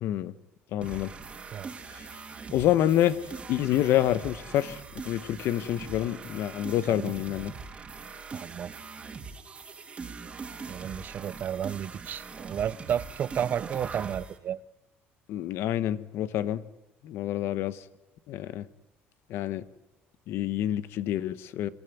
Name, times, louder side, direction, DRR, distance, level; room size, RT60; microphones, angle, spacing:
voice 1, 0.0-0.3 0.7-1.1 1.9-2.1 2.5-3.2 3.5-7.5 15.3-16.6 17.0-17.8 18.3-18.7 19.3-19.6 20.3-21.7, left 12 dB, 65° left, 15 dB, 1.1 m, -27 dB
sound 1, 0.8-14.4, right 5 dB, 25° right, 2.7 m, -42 dB
voice 2, 8.3-8.8 10.7-14.6, right 9 dB, 45° right, 18 dB, 0.7 m, -32 dB
26.0 x 14.5 x 9.3 m, 1.0 s
cardioid pair, 135°, 4 cm